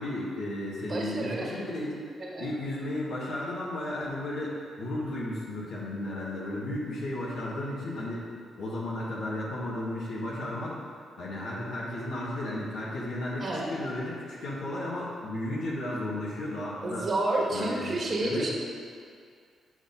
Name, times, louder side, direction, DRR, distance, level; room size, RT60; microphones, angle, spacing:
voice 1, 0.0-2.0 2.4-8.3 8.6-10.8 11.2-17.1 17.5-18.5, left 1 dB, 80° left, -7 dB, 1.7 m, -34 dB
voice 2, 0.8-1.6 2.2-2.5 13.4-13.8 16.8-18.5, right 2 dB, 45° right, -1 dB, 1.5 m, -30 dB
7.9 x 5.1 x 5.3 m, 2.2 s
supercardioid pair, 55°, 0 cm